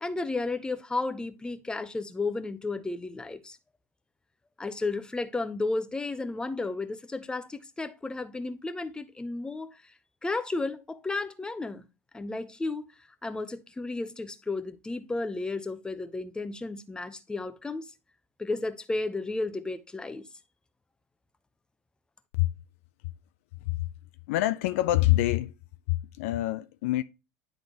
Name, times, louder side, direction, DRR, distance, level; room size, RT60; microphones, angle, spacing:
voice 1, 0.0-3.6 4.6-9.7 10.2-11.9 12.1-12.8 13.2-17.9 18.4-20.3, left 3 dB, 10° left, 0.7 m, -33 dB
voice 2, 24.3-25.5 25.9-27.0, left 16 dB, 60° left, 0.3 m, -25 dB
10.0 x 3.8 x 3.0 m
figure-of-eight pair, 75°, 8 cm